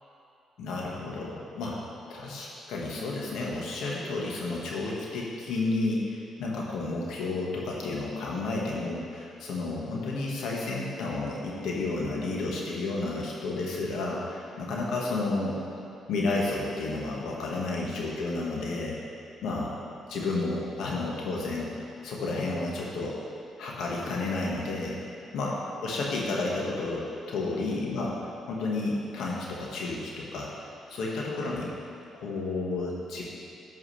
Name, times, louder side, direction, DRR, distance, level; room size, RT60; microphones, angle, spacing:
voice 1, 0.6-1.8 2.1-15.6 16.1-19.0 19.4-19.8 20.1-21.7 22.0-23.2 23.6-25.0 25.3-28.2 28.5-30.5 30.9-31.7 32.1-33.3, left 3 dB, 80° left, -3 dB, 1.5 m, -31 dB
13.0 x 4.9 x 3.3 m, 2.7 s
cardioid pair, 90°, 0 cm